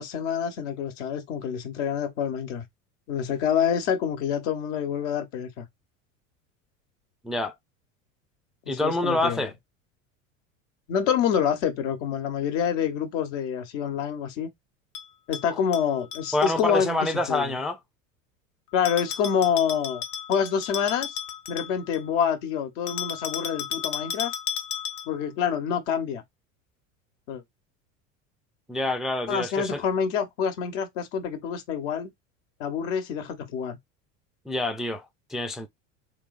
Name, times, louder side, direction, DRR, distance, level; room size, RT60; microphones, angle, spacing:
voice 1, 0.0-2.6 3.1-5.7 8.7-9.5 10.9-14.5 15.3-17.5 18.7-20.0 20.3-21.2 21.5-24.3 25.1-26.2 27.3-27.4 29.3-32.1 32.6-33.8, left 8 dB, 65° left, 1.2 m, -27 dB
voice 2, 8.7-9.5 16.3-17.8 28.7-29.8 34.5-35.7, left 2 dB, ahead, 0.5 m, -27 dB
Bell, 14.9-16.7 18.9-22.1 22.9-25.3, left 9 dB, 50° left, 0.9 m, -34 dB
3.3 x 3.2 x 2.5 m
hypercardioid pair, 90°, 40 cm